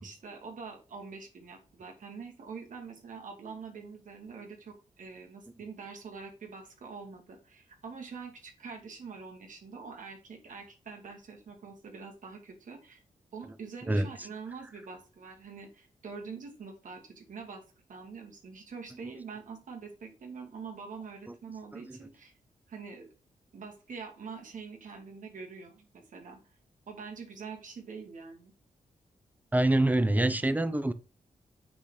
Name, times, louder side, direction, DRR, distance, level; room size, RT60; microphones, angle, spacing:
voice 1, 0.0-13.0 13.3-17.6 17.9-22.3 22.7-23.1 23.5-26.4 26.9-28.5, right 5 dB, 70° right, 2.6 m, -45 dB
voice 2, 29.5-30.9, right 1 dB, 10° right, 0.9 m, -25 dB
8.8 x 4.1 x 5.0 m
cardioid pair, 65°, 14 cm